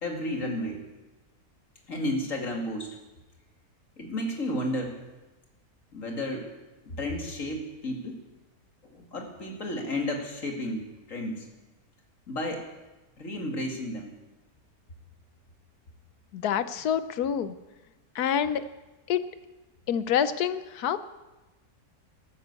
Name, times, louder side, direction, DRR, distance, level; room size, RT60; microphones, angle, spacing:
voice 1, 0.0-0.8 1.9-3.0 4.0-5.0 5.9-6.5 7.0-8.2 8.8-11.5 12.3-12.6 13.2-14.1, left 1 dB, 55° left, 2 dB, 2.9 m, -32 dB
voice 2, 16.3-17.5 18.1-18.6 19.1-19.3 19.9-21.0, left 8 dB, 80° left, 13 dB, 1.3 m, -27 dB
13.5 x 12.5 x 8.3 m, 1.1 s
omnidirectional pair, 1.6 m